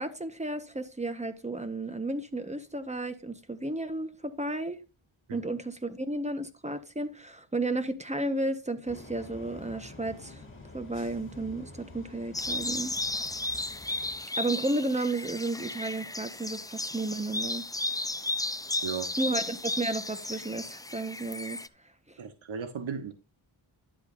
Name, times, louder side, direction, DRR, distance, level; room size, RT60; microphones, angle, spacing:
voice 1, 0.0-4.8 5.3-10.4 10.7-12.9 14.4-17.6 19.2-21.6 22.1-22.2, right 2 dB, 15° right, 1.2 m, -33 dB
sound 1, 8.9-14.2, left 2 dB, 25° left, 3.2 m, -48 dB
sound 2, 12.3-21.7, left 2 dB, 10° left, 0.5 m, -34 dB
voice 2, 22.2-23.1, right 7 dB, 70° right, 1.2 m, -35 dB
11.0 x 8.1 x 2.6 m
cardioid pair, 75°, 49 cm